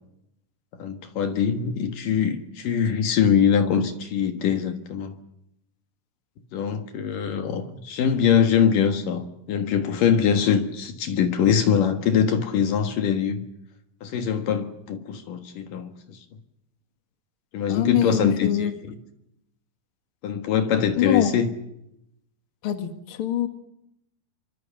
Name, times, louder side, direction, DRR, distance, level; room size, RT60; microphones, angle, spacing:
voice 1, 0.8-5.1 6.5-13.4 14.0-16.2 17.5-18.7 20.2-21.5, left 7 dB, 60° left, 7 dB, 2.3 m, -23 dB
voice 2, 17.7-18.7 21.0-21.3 22.6-23.5, left 10 dB, 85° left, 7 dB, 1.1 m, -23 dB
26.0 x 25.0 x 7.2 m, 0.81 s
omnidirectional pair, 5.9 m